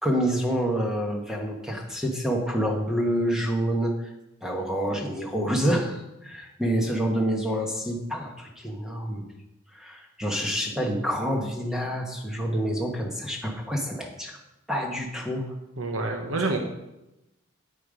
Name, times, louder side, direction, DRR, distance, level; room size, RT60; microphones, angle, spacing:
voice 1, 0.0-4.1 4.4-9.2 9.7-14.4 14.7-15.5, equal, 5° right, 1 dB, 1.3 m, -27 dB
voice 2, 15.8-16.6, right 3 dB, 80° right, 3 dB, 1.1 m, -27 dB
9.0 x 9.0 x 5.1 m, 0.93 s
head